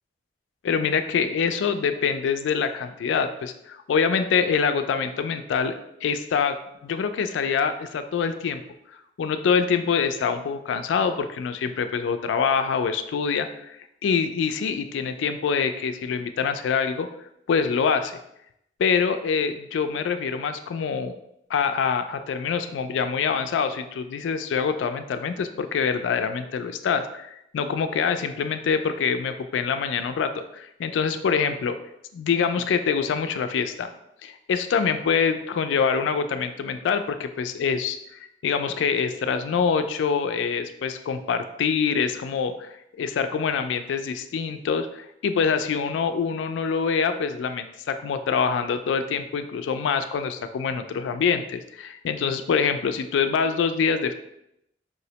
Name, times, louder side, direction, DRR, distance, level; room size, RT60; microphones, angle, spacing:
voice 1, 0.6-5.7 6.0-6.6 6.8-8.6 9.2-17.1 17.5-18.2 18.8-21.1 21.5-31.8 32.1-33.9 34.2-38.0 38.4-54.1, left 6 dB, 90° left, 9 dB, 0.3 m, -25 dB
4.8 x 2.0 x 2.8 m, 0.79 s
head